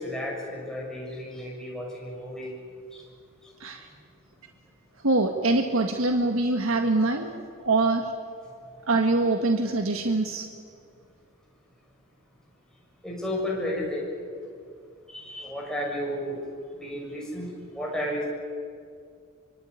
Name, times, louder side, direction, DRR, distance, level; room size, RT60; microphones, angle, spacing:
voice 1, 0.0-2.5 2.9-3.0 13.0-14.0 15.1-16.4 16.8-17.5 17.7-18.2, left 1 dB, 5° left, -3 dB, 6.7 m, -32 dB
voice 2, 5.0-8.1 8.8-10.5, right 2 dB, 70° right, 4 dB, 1.8 m, -24 dB
24.5 x 23.5 x 9.7 m, 2.3 s
head